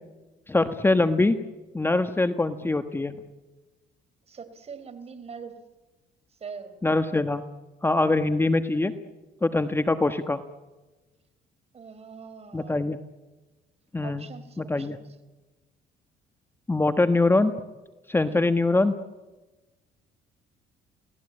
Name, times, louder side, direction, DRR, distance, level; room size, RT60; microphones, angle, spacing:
voice 1, 0.5-1.4 1.7-3.2 6.8-7.4 7.8-8.9 9.4-10.4 12.5-13.0 13.9-14.2 14.6-15.0 16.7-17.6 18.1-19.0, left 2 dB, 15° left, 9 dB, 1.2 m, -23 dB
voice 2, 4.3-5.6 6.3-6.8 11.7-12.8 14.0-15.0 18.2-18.5, right 5 dB, 40° right, 10 dB, 4.1 m, -43 dB
28.5 x 19.0 x 8.7 m, 1.2 s
cardioid pair, 110°, 17 cm